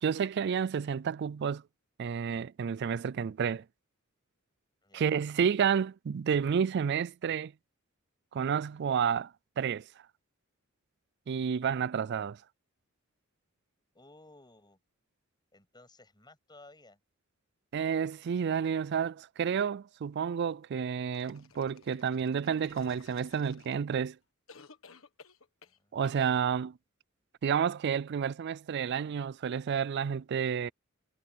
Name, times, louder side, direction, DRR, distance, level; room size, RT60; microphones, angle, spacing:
voice 1, 0.0-1.6 2.0-3.6 4.9-7.5 8.3-9.8 11.3-12.4 17.7-24.2 25.9-26.8 27.4-30.7, right 7 dB, 55° right, 0.3 m, -30 dB
voice 2, 13.9-14.8 15.5-17.0 25.6-26.0, left 2 dB, 20° left, 7.8 m, -57 dB
sound 1, 21.1-24.0 24.5-25.8 26.0-26.2, left 5 dB, 70° left, 1.4 m, -55 dB
head